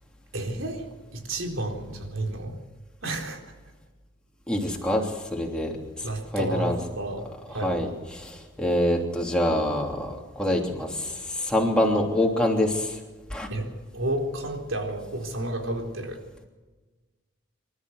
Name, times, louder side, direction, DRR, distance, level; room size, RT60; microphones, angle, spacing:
voice 1, 0.3-0.9 1.1-2.5 3.0-3.4 6.0-7.3 7.5-7.8 13.5-16.2, right 1 dB, 90° right, 2 dB, 4.2 m, -31 dB
voice 2, 4.5-6.1 6.3-6.8 7.6-13.0 13.3-13.5, left 1 dB, 5° left, -1 dB, 3.2 m, -26 dB
26.5 x 13.0 x 8.1 m, 1.3 s
head